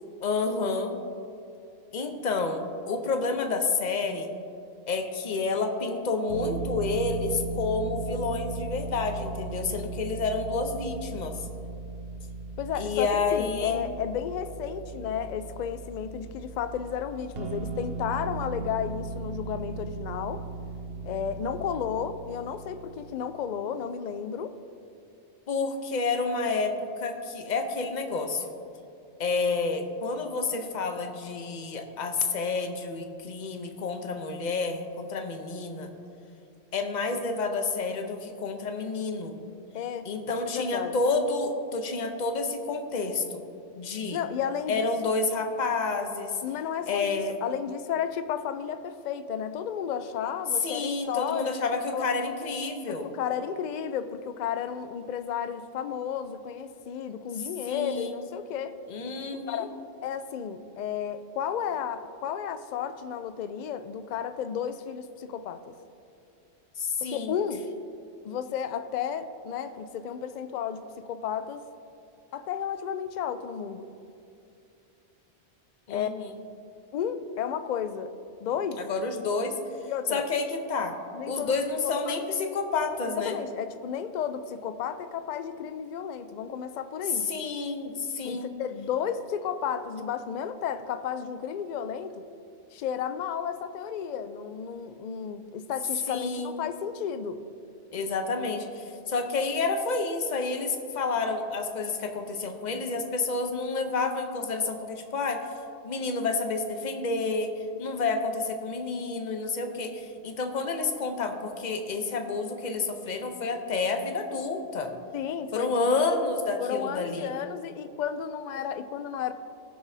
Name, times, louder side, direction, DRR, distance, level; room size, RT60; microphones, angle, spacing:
voice 1, 0.2-1.0 1.9-4.3 4.9-11.3 12.8-13.8 25.5-28.5 29.2-35.9 36.7-39.3 40.1-43.4 43.8-44.2 44.7-46.4 46.9-47.4 50.6-53.1 57.7-58.2 58.9-59.7 66.8-67.3 75.9-76.3 78.8-79.6 80.1-81.0 81.3-83.4 87.3-88.5 96.1-96.6 97.9-105.4 105.8-107.5 107.8-114.9 115.5-117.3, left 3 dB, 45° left, 5 dB, 0.8 m, -29 dB
sound 1, 6.3-23.6, right 3 dB, 60° right, 0.9 m, -37 dB
voice 2, 12.6-20.4 21.0-24.6 39.7-40.1 40.5-41.0 44.1-45.1 46.4-51.5 51.9-52.1 52.9-58.8 59.5-59.7 60.0-65.7 67.0-67.6 68.2-71.6 72.3-73.9 75.9-76.1 76.9-78.1 78.4-78.8 79.9-80.2 81.1-81.6 81.8-81.9 83.1-87.3 88.2-92.2 92.7-97.4 115.1-116.0 116.6-119.3, left 8 dB, 60° left, 11 dB, 0.4 m, -33 dB
18.0 x 6.1 x 2.7 m, 2.6 s
omnidirectional pair, 1.2 m